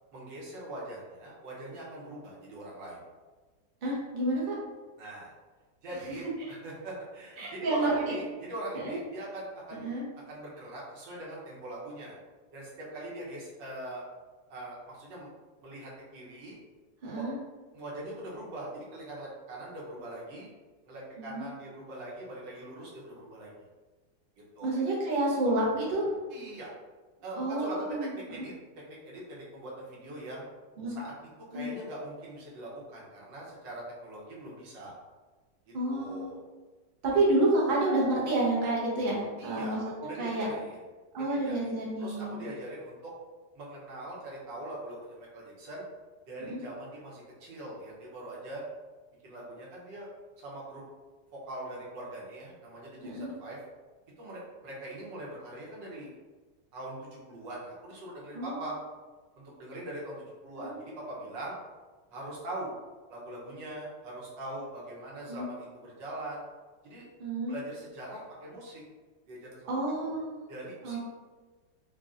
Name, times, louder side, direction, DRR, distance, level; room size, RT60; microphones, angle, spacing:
voice 1, 0.1-3.0 5.0-5.3 5.8-9.9 10.3-12.2 12.5-14.0 14.5-15.3 15.6-16.6 17.1-17.2 17.7-20.5 20.8-23.5 24.6-24.8 26.3-26.7 27.2-27.9 28.1-28.5 28.9-30.5 30.9-31.1 31.5-34.9 35.7-36.4 39.4-40.8 41.1-43.1 43.5-45.8 46.3-48.6 49.2-50.1 50.4-50.8 51.3-53.6 54.2-56.1 56.7-58.7 59.4-61.6 62.1-62.7 63.1-66.5 66.8-67.0 67.5-68.8 69.3-69.7 70.0-70.1 70.5-71.0, right 1 dB, 80° right, -5 dB, 1.6 m, -42 dB
voice 2, 3.8-4.5 6.2-6.5 7.4-8.1 8.7-9.0 9.8-10.0 17.0-17.3 21.2-21.5 24.6-26.1 27.4-28.1 28.4-28.5 30.8-31.0 31.5-31.7 35.7-36.3 37.0-39.8 40.2-40.5 41.1-42.5 46.4-46.6 53.0-53.3 58.3-58.6 60.6-60.8 65.3-65.5 67.2-67.6 69.7-70.4 70.8-71.0, right 2 dB, 40° right, -5 dB, 0.7 m, -29 dB
5.0 x 2.4 x 2.5 m, 1.3 s
omnidirectional pair, 2.0 m